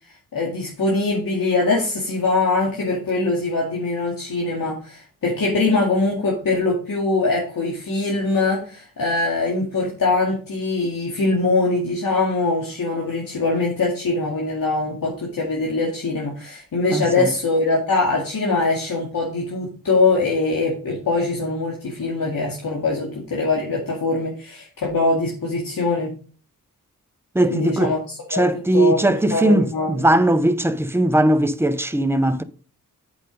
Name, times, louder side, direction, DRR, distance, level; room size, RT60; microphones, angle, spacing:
voice 1, 0.3-26.1 27.5-28.0 28.3-28.4 28.7-29.0 29.3-30.0, left 3 dB, 75° left, 2.3 m, -22 dB
voice 2, 16.9-17.3 27.3-28.0 28.3-32.4, right 1 dB, 5° right, 0.8 m, -19 dB
8.2 x 5.2 x 5.2 m
cardioid pair, 65°, 34 cm